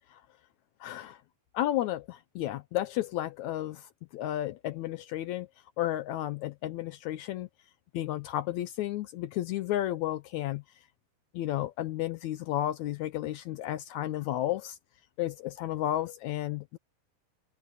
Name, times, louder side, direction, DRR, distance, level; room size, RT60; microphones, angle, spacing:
voice 1, 0.8-1.2 1.5-5.5 5.8-7.5 7.9-10.6 11.3-14.8 15.2-16.8, left 13 dB, 80° left, 1.7 m, -32 dB
omnidirectional pair, 3.9 m